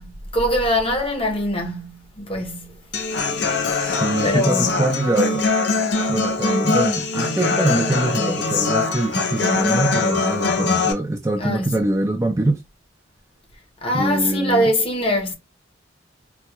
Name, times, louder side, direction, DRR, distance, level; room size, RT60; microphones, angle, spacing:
voice 1, 0.0-2.9 4.2-4.8 9.4-9.9 11.4-11.8 13.8-15.3, left 1 dB, 30° left, 0.8 m, -23 dB
Human voice / Acoustic guitar, 2.9-10.9, left 4 dB, 60° left, 0.6 m, -22 dB
voice 2, 3.8-5.5 6.1-12.6 13.9-14.7, right 2 dB, 15° right, 0.3 m, -23 dB
4.2 x 2.2 x 2.2 m
head